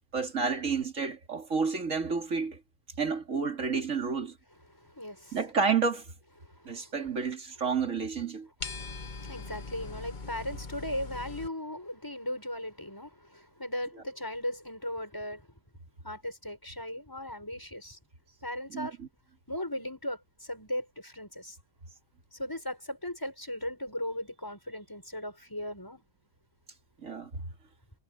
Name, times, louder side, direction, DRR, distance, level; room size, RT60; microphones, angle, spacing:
voice 1, 0.1-2.6 3.0-4.3 5.3-6.0 6.7-8.5 18.7-19.1 27.0-27.4, right 5 dB, 85° right, 2.9 m, -30 dB
voice 2, 4.7-5.4 6.4-6.9 8.8-15.5 16.0-18.0 18.4-19.0 19.5-21.6 22.3-26.0, left 1 dB, 15° left, 7.1 m, -37 dB
sound 1, 8.6-11.5, left 3 dB, 40° left, 1.5 m, -40 dB
omnidirectional pair, 1.3 m